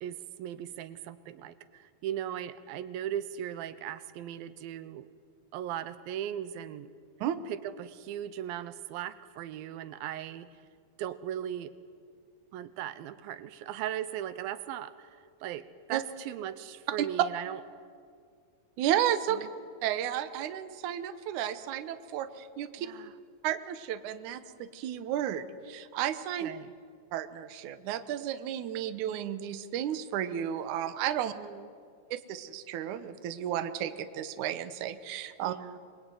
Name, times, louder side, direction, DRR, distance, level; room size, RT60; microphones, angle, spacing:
voice 1, 0.0-5.1 5.5-6.9 7.5-10.5 11.0-11.7 12.5-15.1 15.4-17.6 19.3-19.5 22.8-23.1 26.4-26.7 31.4-31.7 35.4-35.8, right 11 dB, 85° right, 14 dB, 2.6 m, -38 dB
voice 2, 18.8-19.5 19.8-22.9 23.4-26.5 27.1-31.3 32.1-35.6, right 10 dB, 65° right, 10 dB, 2.3 m, -33 dB
26.5 x 21.0 x 9.3 m, 2.2 s
omnidirectional pair, 4.1 m